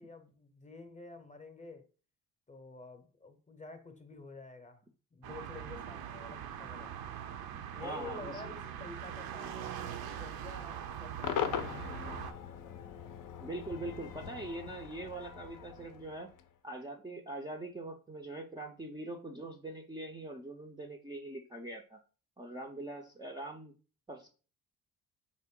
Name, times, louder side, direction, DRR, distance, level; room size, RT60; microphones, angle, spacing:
voice 1, 0.0-1.9 2.5-4.8 5.1-7.1 7.7-12.2, left 3 dB, 20° left, 6 dB, 0.8 m, -49 dB
sound 1, 5.2-12.3, right 9 dB, 60° right, 0.6 m, -42 dB
voice 2, 7.8-8.5 13.4-16.3 16.6-22.0 22.4-23.7 24.1-24.3, right 2 dB, 10° right, 1 dB, 0.5 m, -42 dB
Cheering / Crowd / Fireworks, 11.2-16.5, left 8 dB, 50° left, 0.6 m, -40 dB
3.6 x 2.1 x 3.6 m, 0.36 s
supercardioid pair, 60°, 42 cm